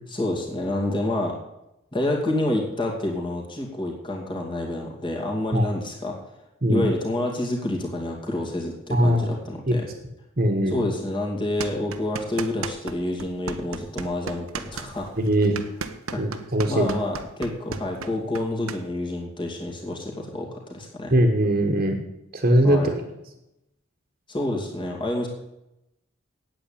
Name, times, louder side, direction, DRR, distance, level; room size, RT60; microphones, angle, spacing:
voice 1, 0.1-1.4 1.9-6.1 6.7-9.9 10.7-15.1 16.1-21.1 22.6-22.9 24.3-25.3, left 1 dB, 25° left, 0 dB, 2.4 m, -28 dB
voice 2, 8.9-9.3 9.7-9.8 10.4-10.9 15.2-15.6 16.2-16.9 21.1-22.0 22.3-23.0, right 1 dB, 40° right, 2 dB, 1.5 m, -20 dB
sound 1, 11.6-12.9 13.2-18.8, right 5 dB, 90° right, 1.0 m, -34 dB
9.0 x 8.9 x 8.7 m, 0.88 s
head